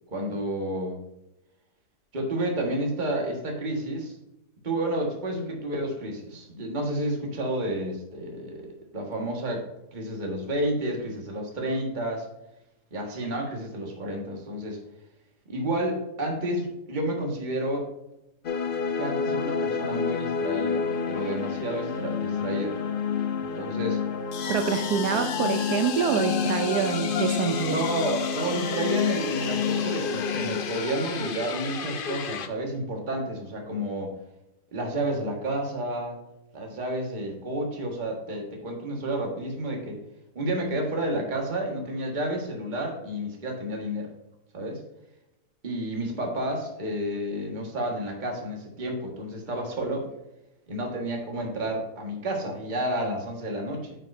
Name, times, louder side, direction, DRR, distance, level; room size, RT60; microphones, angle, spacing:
voice 1, 0.1-1.0 2.1-4.2 4.6-8.6 8.9-9.6 9.9-12.3 12.9-14.8 15.5-17.9 19.0-22.8 23.4-24.0 27.7-34.1 34.7-36.2 36.5-40.0 40.3-44.1 44.5-44.8 45.6-50.1 50.7-54.0, right 1 dB, 30° right, 0 dB, 1.7 m, -30 dB
sound 1, 18.4-32.5, left 6 dB, 65° left, 0.5 m, -29 dB
voice 2, 24.5-27.8, right 7 dB, 80° right, 6 dB, 1.2 m, -26 dB
8.8 x 6.7 x 2.6 m, 0.88 s
omnidirectional pair, 1.7 m